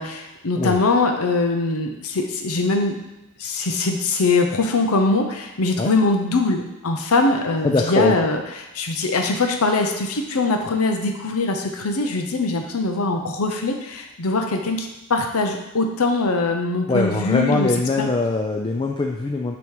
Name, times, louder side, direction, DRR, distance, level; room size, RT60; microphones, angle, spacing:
voice 1, 0.0-3.0 3.4-8.4 8.7-17.7 18.0-18.1, left 3 dB, 75° left, 4 dB, 0.7 m, -22 dB
voice 2, 7.6-8.1 16.9-19.6, left 3 dB, 20° left, 1 dB, 0.4 m, -22 dB
8.5 x 3.1 x 4.8 m, 0.96 s
head